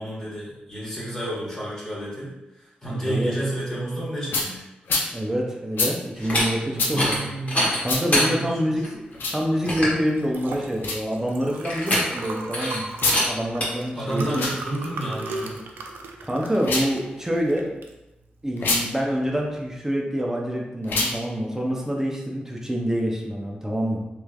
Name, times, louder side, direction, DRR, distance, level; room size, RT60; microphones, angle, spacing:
voice 1, 0.0-4.6 6.6-8.8 13.9-15.6, right 1 dB, 20° left, -8 dB, 1.5 m, -31 dB
voice 2, 3.0-3.4 5.1-7.2 7.8-9.0 9.3-12.8 13.2-14.5 16.2-17.7 18.4-24.0, equal, 15° right, -1 dB, 0.6 m, -26 dB
sound 1, 4.3-4.5 4.9-5.1 5.8-5.9 6.8-6.9 7.8-8.0 9.1-9.4 10.8-11.0 12.9-13.2 14.3-14.6 16.5-16.9 18.6-18.8 20.8-21.2, left 3 dB, 80° left, 0.5 m, -25 dB
sound 2, 6.2-6.4 6.9-7.2 7.5-8.3 8.8-8.9 9.3-9.4 9.7-10.0 11.6-12.3 12.5-12.8 13.1-13.2 13.6-13.7, left 1 dB, 45° left, 1.2 m, -23 dB
Liquid, 9.6-19.8, right 3 dB, 85° right, 0.4 m, -38 dB
3.1 x 3.0 x 2.4 m, 0.97 s
cardioid pair, 60°, 3 cm